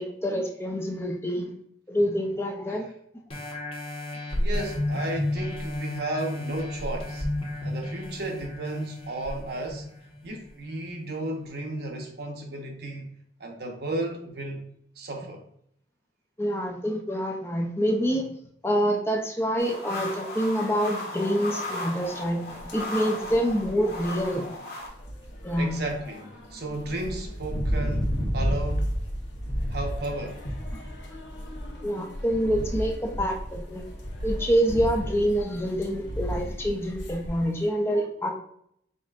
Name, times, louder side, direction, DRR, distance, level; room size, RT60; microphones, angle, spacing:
voice 1, 0.0-1.5 1.9-2.9 16.4-18.3 18.6-22.4 22.7-24.4 25.4-25.8 30.7-30.8 31.8-33.8 34.2-38.3, equal, 15° left, 0.5 m, -26 dB
sound 1, 3.3-10.5 11.0-11.1, left 1 dB, 35° left, 1.1 m, -32 dB
voice 2, 4.4-7.3 7.6-9.8 10.2-13.1 13.4-14.6 15.0-15.4 25.6-28.9 29.7-30.4, right 1 dB, 60° right, 0.9 m, -34 dB
sound 2, 19.6-24.9, left 2 dB, 60° left, 1.5 m, -36 dB
sound 3, 22.0-37.6, equal, 75° left, 1.1 m, -33 dB
5.2 x 3.8 x 2.5 m
head